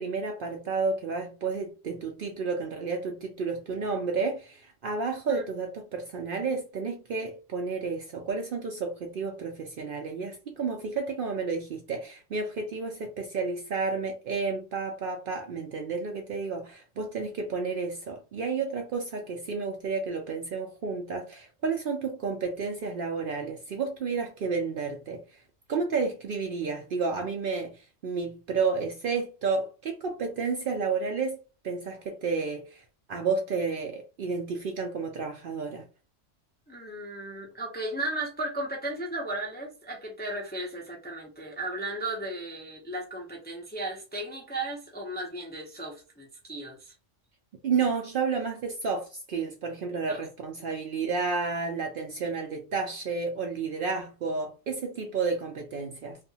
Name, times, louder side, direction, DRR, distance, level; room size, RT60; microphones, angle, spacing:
voice 1, 0.0-25.4 25.7-35.9 47.6-56.2, right 4 dB, 60° right, 0.6 m, -31 dB
voice 2, 36.7-46.9 50.1-50.2, right 1 dB, 10° left, 0.5 m, -35 dB
2.8 x 2.4 x 2.7 m
omnidirectional pair, 1.2 m